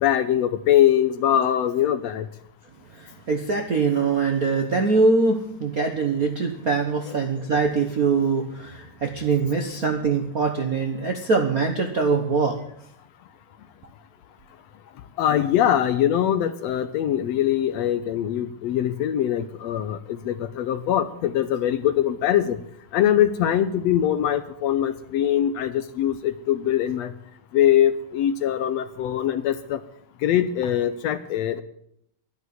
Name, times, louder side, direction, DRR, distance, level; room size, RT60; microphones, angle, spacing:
voice 1, 0.0-2.3 7.1-7.2 15.2-22.6 22.9-27.1 27.5-29.8 30.2-31.6, left 11 dB, 70° left, 12 dB, 1.7 m, -22 dB
voice 2, 2.9-12.6, right 4 dB, 50° right, 4 dB, 1.0 m, -23 dB
12.0 x 11.0 x 9.4 m, 0.72 s
omnidirectional pair, 3.4 m